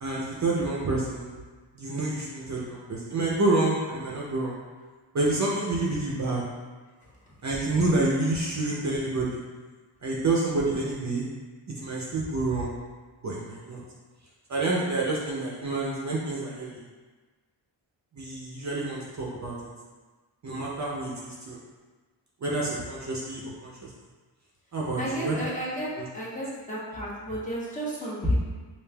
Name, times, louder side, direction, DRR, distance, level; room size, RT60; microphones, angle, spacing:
voice 1, 0.0-1.3 1.7-4.6 5.1-6.4 7.4-9.4 10.0-11.3 11.8-12.7 13.2-13.8 14.5-16.8 18.1-19.5 20.4-21.6 22.4-23.9 24.7-25.4 26.0-26.1, right 2 dB, 40° right, -4 dB, 0.6 m, -28 dB
voice 2, 25.0-28.4, equal, 20° left, -8 dB, 0.9 m, -31 dB
5.0 x 2.5 x 2.2 m, 1.3 s
wide cardioid pair, 130°, 43 cm